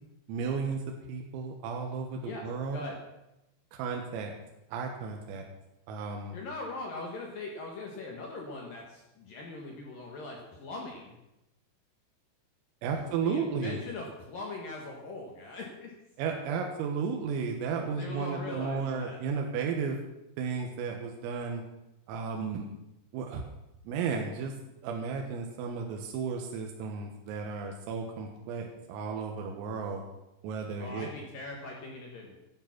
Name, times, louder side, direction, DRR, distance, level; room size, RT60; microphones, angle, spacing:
voice 1, 0.3-0.8 1.1-2.8 3.7-4.3 4.7-5.4 5.9-6.4 12.8-13.8 16.2-20.0 20.4-21.6 22.1-22.7 23.1-23.4 23.9-24.5 24.8-30.0 30.4-31.1, right 5 dB, 90° right, 2 dB, 3.9 m, -33 dB
voice 2, 2.2-3.0 6.3-11.1 13.0-15.9 17.9-19.2 30.8-32.4, left 2 dB, 60° left, 0 dB, 2.5 m, -41 dB
14.0 x 9.6 x 5.9 m, 0.90 s
omnidirectional pair, 5.9 m